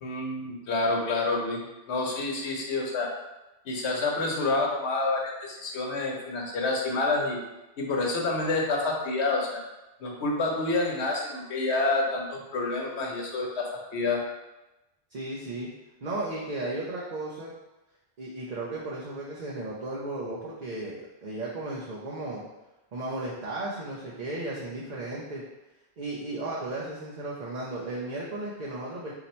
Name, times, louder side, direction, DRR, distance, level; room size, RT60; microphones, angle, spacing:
voice 1, 0.0-1.6 1.9-3.1 3.7-7.4 7.8-9.6 10.0-13.7 13.9-14.2, left 3 dB, 80° left, -1 dB, 1.1 m, -28 dB
voice 2, 15.1-15.7 16.0-17.5 18.2-22.4 22.9-25.4 26.0-29.1, right 2 dB, 45° right, -6 dB, 0.8 m, -35 dB
4.1 x 2.8 x 4.2 m, 0.99 s
omnidirectional pair, 1.1 m